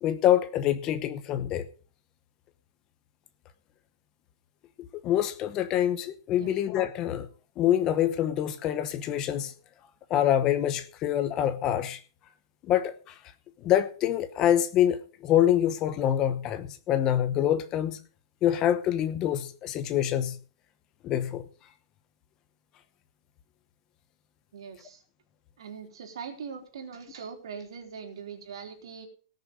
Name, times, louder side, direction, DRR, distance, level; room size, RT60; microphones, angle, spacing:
voice 1, 0.0-1.7 5.0-7.3 7.6-9.5 10.1-12.0 12.6-13.1 13.6-18.0 18.4-20.4 21.0-21.4, left 11 dB, 20° left, 0.9 m, -25 dB
voice 2, 24.5-25.0 25.6-29.1, right 6 dB, 80° right, 3.7 m, -41 dB
18.5 x 6.7 x 5.3 m
supercardioid pair, 175°, 3 cm